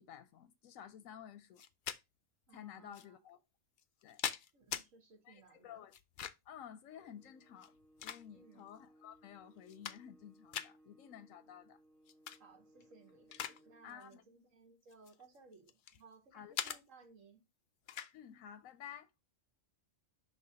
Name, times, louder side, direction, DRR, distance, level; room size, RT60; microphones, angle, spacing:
voice 1, 0.0-1.6 2.5-3.4 4.0-4.2 5.2-6.0 6.5-7.7 8.0-11.8 13.8-14.2 16.3-16.8 18.1-19.1, left 9 dB, 85° left, 1.0 m, -53 dB
sound 1, 1.6-2.0 2.9-3.0 3.8-4.9 5.9-6.6 7.5-8.6 9.1-9.2 9.6-10.2 10.5-10.7 12.1-12.4 12.8-13.6 13.9-14.1 14.9-16.0 16.5-16.8 17.9-18.1, left 9 dB, 60° left, 0.5 m, -42 dB
voice 2, 2.5-3.2 4.5-5.8 8.3-8.7 12.4-17.4, right 4 dB, 75° right, 1.7 m, -61 dB
sound 2, 6.9-13.9, right 1 dB, 45° left, 3.8 m, -66 dB
5.7 x 3.2 x 5.6 m
omnidirectional pair, 1.4 m